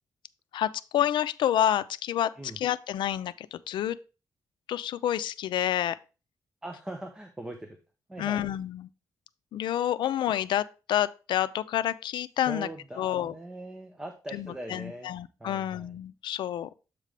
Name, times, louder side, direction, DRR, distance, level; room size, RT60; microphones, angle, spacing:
voice 1, 0.5-2.3 2.6-4.0 4.7-6.0 8.2-8.9 9.5-12.7 13.0-13.3 14.3-16.7, left 11 dB, 85° left, 0.4 m, -28 dB
voice 2, 6.6-7.8 8.1-8.5 12.5-15.1 15.4-15.9, right 1 dB, 10° right, 0.6 m, -41 dB
7.4 x 5.1 x 3.3 m
wide cardioid pair, 170°, 8 cm